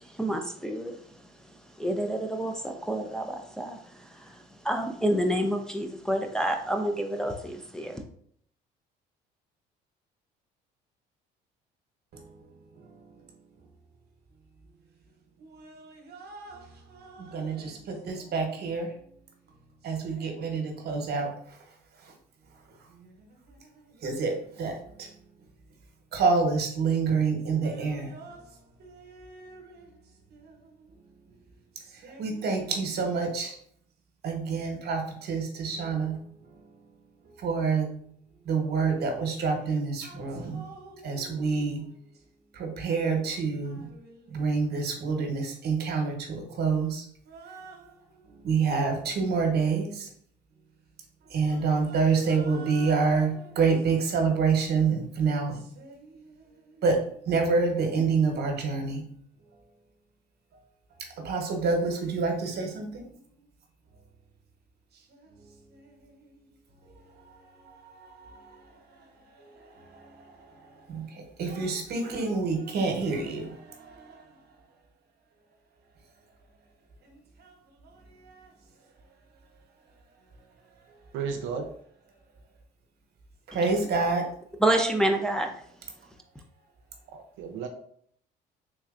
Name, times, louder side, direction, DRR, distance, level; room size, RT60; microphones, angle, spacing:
voice 1, 0.1-1.0 1.8-3.8 4.1-4.3 4.6-8.0 84.6-85.5, right 1 dB, 5° left, 3 dB, 0.5 m, -28 dB
voice 2, 15.4-16.6 16.9-18.9 19.8-21.3 24.0-25.1 26.1-28.4 28.8-29.8 30.4-30.5 32.0-33.6 34.2-36.2 37.4-37.9 38.4-41.8 42.5-47.8 48.4-50.1 51.3-56.2 56.8-57.0 57.3-59.0 61.2-63.0 68.0-68.5 69.6-70.1 70.9-74.2 77.4-77.5 78.3-78.4 83.5-84.3, right 4 dB, 55° right, 3 dB, 1.0 m, -28 dB
voice 3, 81.1-81.7 87.1-87.7, right 6 dB, 75° right, 4 dB, 0.5 m, -33 dB
3.6 x 3.1 x 2.4 m, 0.63 s
supercardioid pair, 70°, 20 cm